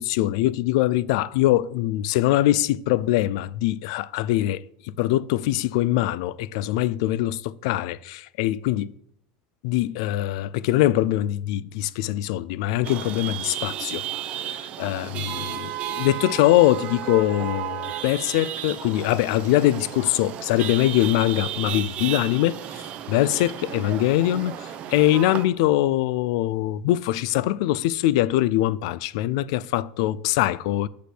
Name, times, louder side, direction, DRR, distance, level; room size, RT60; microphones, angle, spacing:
voice 1, 0.0-8.9 9.6-14.0 14.3-30.9, left 14 dB, 70° left, 0.5 m, -23 dB
Chatter / Vehicle horn car horn honking / Traffic noise roadway noise, 12.8-25.4, right 11 dB, 40° right, 0.9 m, -33 dB
8.4 x 6.3 x 8.0 m
supercardioid pair, 150°, 3 cm